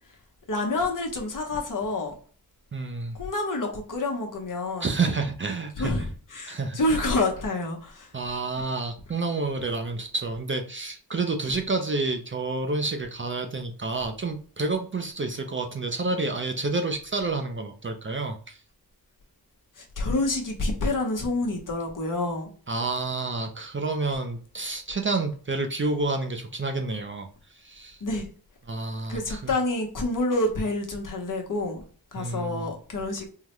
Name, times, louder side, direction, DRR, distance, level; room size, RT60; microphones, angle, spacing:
voice 1, 0.5-2.1 3.1-5.0 5.8-8.1 19.8-22.5 28.0-28.3 29.1-31.8 32.1-33.3, left 2 dB, 50° left, 1.0 m, -28 dB
voice 2, 2.7-3.2 4.8-5.9 6.5-6.8 8.1-18.6 22.7-27.3 27.6-28.0 28.7-29.5 32.2-32.7, right 3 dB, 30° right, 0.5 m, -29 dB
3.8 x 2.1 x 3.0 m
cardioid pair, 75°, 40 cm